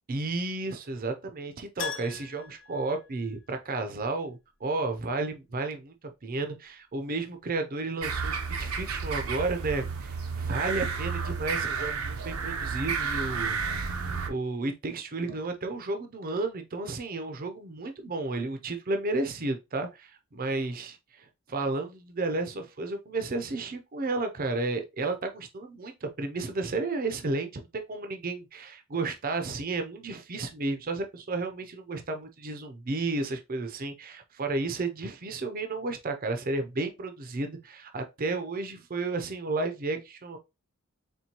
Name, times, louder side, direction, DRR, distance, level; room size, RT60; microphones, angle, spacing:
voice 1, 0.1-5.9 6.2-20.9 21.5-40.4, right 3 dB, 45° right, 0.6 m, -32 dB
Keyboard (musical), 1.8-4.1 6.9-7.0 7.2-7.3, left 6 dB, 60° left, 0.8 m, -40 dB
sound 1, 8.0-14.3, right 5 dB, 85° right, 0.7 m, -31 dB
4.4 x 3.2 x 2.9 m
head